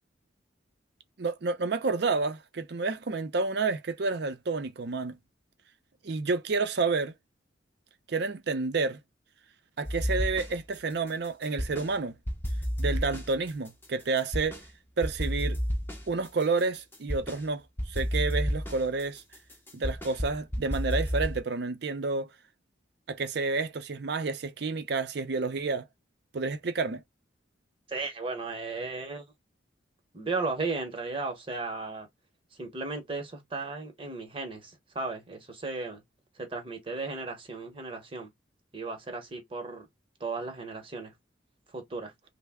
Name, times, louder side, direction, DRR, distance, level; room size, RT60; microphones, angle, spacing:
voice 1, 1.2-5.2 6.0-7.1 8.1-9.0 9.8-12.1 12.8-14.6 15.0-15.6 16.1-19.2 19.7-22.3 23.1-25.9 26.3-27.0, right 4 dB, 55° right, 0.5 m, -30 dB
sound 1, 9.8-10.7 11.1-11.9 12.3-14.7 15.0-17.4 17.8-21.4, equal, 10° left, 0.6 m, -31 dB
voice 2, 27.9-29.2 30.1-32.1 32.6-36.0 36.4-38.3 38.7-39.9 40.2-41.1 41.7-42.1, right 3 dB, 25° right, 0.8 m, -35 dB
3.2 x 2.0 x 3.4 m
head